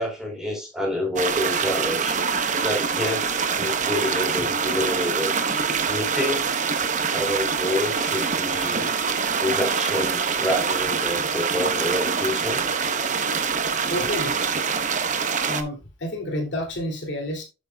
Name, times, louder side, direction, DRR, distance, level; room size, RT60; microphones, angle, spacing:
voice 1, 0.0-2.2 2.6-5.3 5.9-6.4 7.1-9.0 9.4-12.6, left 1 dB, ahead, -1 dB, 3.9 m, -28 dB
sound 1, 1.2-15.6, right 5 dB, 40° right, 0.8 m, -25 dB
voice 2, 13.9-14.3 15.5-17.4, left 1 dB, 65° left, 1 dB, 2.7 m, -29 dB
8.4 x 7.8 x 2.3 m, 0.28 s
head